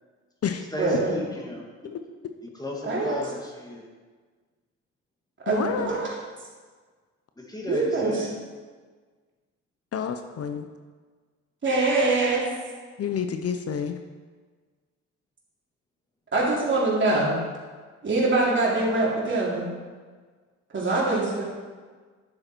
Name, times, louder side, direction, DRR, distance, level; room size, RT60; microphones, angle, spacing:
voice 1, 0.7-1.6 2.6-3.9 7.5-8.4, left 2 dB, 15° left, -1 dB, 2.0 m, -33 dB
voice 2, 2.8-3.2 5.4-6.1 7.7-8.1 11.6-12.4 16.3-17.3 18.0-19.6 20.7-21.4, right 3 dB, 40° right, -4 dB, 3.5 m, -23 dB
voice 3, 5.5-5.9 9.9-10.6 13.0-13.9, left 7 dB, 55° left, 7 dB, 0.7 m, -29 dB
10.5 x 7.7 x 4.5 m, 1.5 s
cardioid pair, 90°, 30 cm